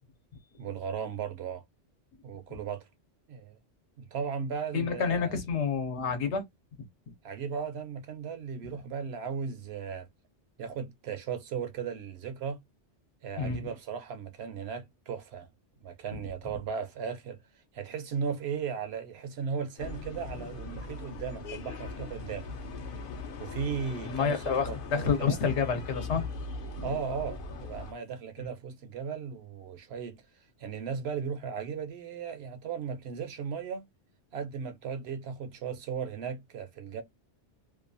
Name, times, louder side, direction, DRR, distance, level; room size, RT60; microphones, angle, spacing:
voice 1, 0.6-1.6 2.2-2.9 3.3-3.6 4.0-5.4 7.2-10.1 10.6-12.6 13.2-15.5 15.8-17.4 17.7-22.5 23.4-25.4 26.8-30.2 30.6-33.9 34.3-37.0, right 6 dB, 65° right, 0.8 m, -36 dB
voice 2, 4.7-6.4 13.4-13.7 24.0-26.3 26.7-26.8, left 6 dB, 70° left, 1.1 m, -29 dB
sound 1, 19.8-27.9, left 3 dB, 55° left, 0.7 m, -40 dB
2.6 x 2.3 x 2.5 m
omnidirectional pair, 1.2 m